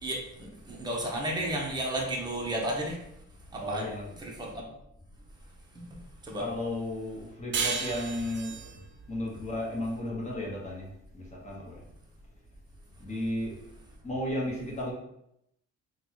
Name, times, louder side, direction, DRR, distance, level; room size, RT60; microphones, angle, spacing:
voice 1, 0.0-3.0 3.5-3.9 4.2-4.6 5.7-5.8 6.2-6.5, right 1 dB, 15° right, -2 dB, 0.9 m, -33 dB
voice 2, 3.6-4.1 6.4-11.8 13.0-13.6 14.0-14.9, left 1 dB, 25° left, -3 dB, 1.2 m, -34 dB
sound 1, 7.5-10.7, right 6 dB, 40° right, 0.4 m, -35 dB
3.9 x 2.4 x 3.0 m, 0.79 s
cardioid pair, 90°, 30 cm